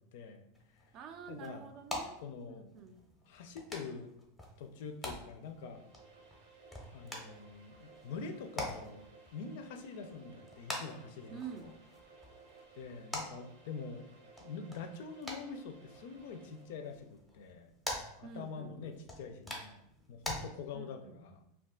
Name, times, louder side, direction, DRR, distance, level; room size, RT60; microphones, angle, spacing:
voice 1, 0.1-0.4 0.8-0.9 1.3-1.7 2.2-2.6 3.3-4.1 4.6-5.8 6.9-9.1 9.3-11.7 12.7-14.1 14.4-17.7 18.2-19.8 20.1-21.4, left 5 dB, 65° left, 7 dB, 0.4 m, -45 dB
sound 1, 0.5-20.4, left 1 dB, 5° left, 0.6 m, -47 dB
voice 2, 0.9-2.2 2.5-3.0 11.3-11.7 18.2-19.0 20.7-21.2, right 7 dB, 40° right, 6 dB, 0.3 m, -48 dB
sound 2, 5.3-17.0, right 4 dB, 90° right, 0.8 m, -59 dB
2.3 x 2.3 x 3.7 m, 0.80 s
supercardioid pair, 150°, 0 cm